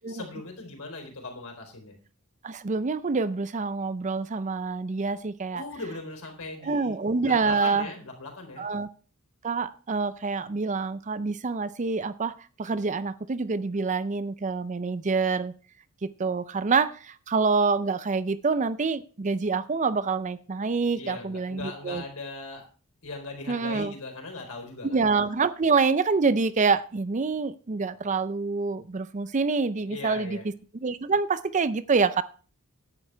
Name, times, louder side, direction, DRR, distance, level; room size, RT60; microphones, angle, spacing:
voice 1, 0.1-1.9 5.5-6.9 7.2-8.7 20.9-22.6 23.0-25.0 29.9-30.4, left 3 dB, 70° left, 3 dB, 4.0 m, -39 dB
voice 2, 2.4-5.6 6.6-7.9 8.6-8.9 9.4-12.3 12.6-15.5 16.0-22.0 23.5-23.9 24.9-30.4 30.8-32.2, right 4 dB, 35° right, 14 dB, 0.5 m, -26 dB
10.5 x 8.7 x 4.5 m, 0.38 s
head